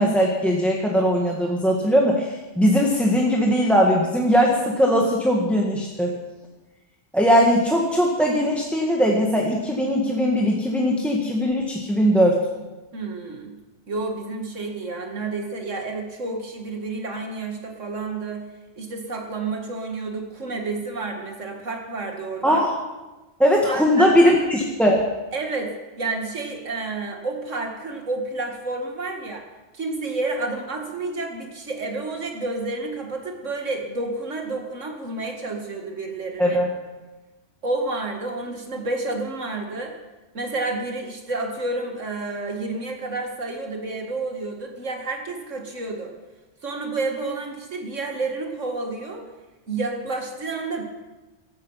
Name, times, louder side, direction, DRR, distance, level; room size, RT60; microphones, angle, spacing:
voice 1, 0.0-6.1 7.1-12.4 22.4-22.7 23.4-25.0 36.4-36.7, equal, ahead, -1 dB, 1.6 m, -20 dB
voice 2, 12.9-13.6 13.9-18.4 18.8-22.7 23.6-24.5 25.3-29.5 29.7-36.6 37.6-40.0 40.3-46.1 46.6-49.3 49.7-50.8, right 3 dB, 85° right, 3 dB, 2.4 m, -30 dB
15.5 x 13.0 x 5.7 m, 1.2 s
omnidirectional pair, 1.3 m